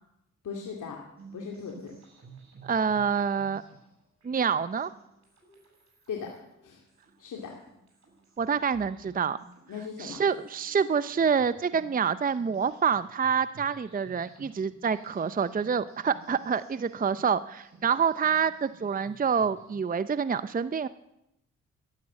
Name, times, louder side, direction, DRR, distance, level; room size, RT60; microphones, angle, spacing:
voice 1, 0.4-1.0 1.3-1.9 6.1-6.3 6.6-6.8 7.2-7.5 9.7-10.2, left 6 dB, 70° left, 0 dB, 2.4 m, -38 dB
sound 1, 1.2-20.0, right 3 dB, 55° right, 7.4 m, -54 dB
voice 2, 2.6-3.6 4.2-4.9 8.4-9.4 10.0-20.9, right 6 dB, 25° right, 14 dB, 0.6 m, -27 dB
12.5 x 11.5 x 7.6 m, 0.83 s
supercardioid pair, 55°, 32 cm